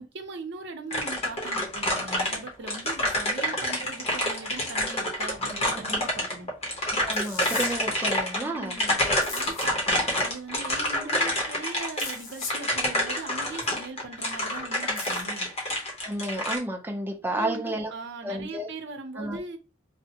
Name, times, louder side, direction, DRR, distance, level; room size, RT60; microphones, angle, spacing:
voice 1, 0.0-6.5 8.4-15.5 17.3-19.6, right 3 dB, 65° right, 0.7 m, -40 dB
sound 1, 0.9-16.6, left 1 dB, 35° left, 1.0 m, -28 dB
voice 2, 6.9-9.3 10.9-11.1 16.0-17.9 18.2-18.7 19.2-19.4, right 1 dB, 10° right, 0.5 m, -32 dB
sound 2, 7.1-7.7 9.2-9.7 12.0-12.6 15.0-15.2, left 4 dB, 85° left, 0.9 m, -37 dB
3.4 x 2.1 x 2.8 m
head